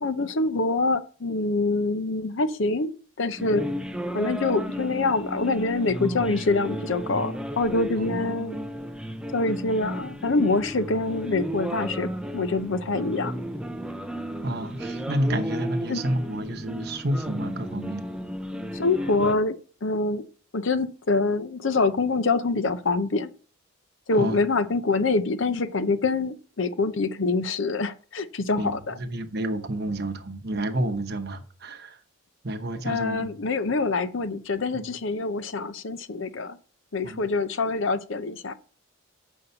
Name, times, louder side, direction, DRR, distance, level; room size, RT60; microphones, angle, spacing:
voice 1, 0.0-2.9 3.2-3.7 4.1-8.6 9.3-13.4 15.3-15.4 15.9-16.0 18.7-20.2 20.5-23.3 24.1-29.0 32.8-36.6 36.9-38.5, left 3 dB, 60° left, 0.7 m, -25 dB
sound 1, 3.4-19.3, equal, 5° right, 0.4 m, -33 dB
voice 2, 14.4-18.0 24.2-24.4 28.6-32.0 32.4-33.3 34.7-34.9 37.0-37.2, right 1 dB, 50° right, 1.0 m, -30 dB
6.9 x 5.5 x 6.8 m
head